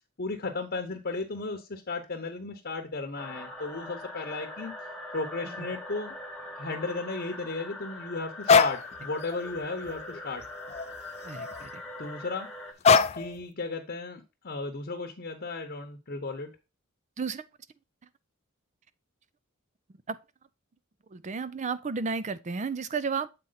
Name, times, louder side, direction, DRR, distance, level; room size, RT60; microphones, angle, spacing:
voice 1, 0.2-4.7 5.1-6.2 6.6-10.4 12.0-12.5 13.1-16.5, left 3 dB, 45° left, 0.9 m, -35 dB
sound 1, 3.2-12.7, left 2 dB, ahead, 1.2 m, -42 dB
sound 2, 8.5-8.8 9.3-9.5 9.9-10.9 11.3-11.7 12.8-13.3, left 5 dB, 30° left, 0.3 m, -22 dB
voice 2, 11.2-11.8 17.2-17.4 20.1-20.2 21.1-23.3, right 5 dB, 35° right, 0.4 m, -32 dB
7.7 x 4.3 x 4.0 m
head